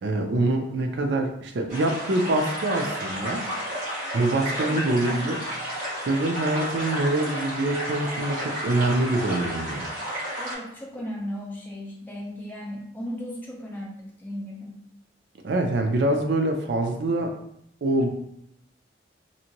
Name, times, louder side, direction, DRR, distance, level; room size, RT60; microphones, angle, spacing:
voice 1, 0.0-3.5 4.1-5.4 6.0-9.9 15.4-17.3 17.8-18.1, right 2 dB, 65° right, 4 dB, 0.4 m, -25 dB
sound 1, 1.7-10.5, equal, 45° right, 1.3 m, -32 dB
voice 2, 4.7-5.3 10.4-14.8, equal, 10° left, -4 dB, 0.6 m, -36 dB
2.7 x 2.5 x 2.8 m, 0.73 s
head